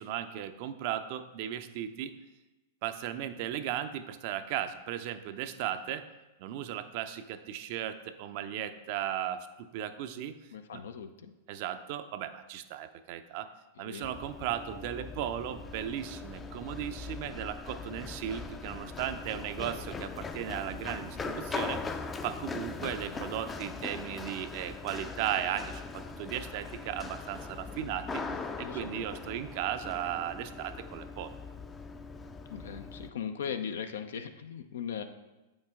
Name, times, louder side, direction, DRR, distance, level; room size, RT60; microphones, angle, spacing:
voice 1, 0.0-2.1 2.8-6.0 6.4-10.4 10.7-10.8 11.5-13.5 13.8-22.0 22.2-28.2 28.6-31.4, right 11 dB, 50° right, 10 dB, 0.5 m, -36 dB
voice 2, 10.5-11.3 13.8-14.1 28.3-29.1 32.5-35.0, left 7 dB, 70° left, 7 dB, 0.6 m, -39 dB
Run, 14.0-33.1, left 4 dB, 20° left, 0.5 m, -40 dB
8.0 x 5.2 x 3.6 m, 1.1 s
hypercardioid pair, 105°, 0 cm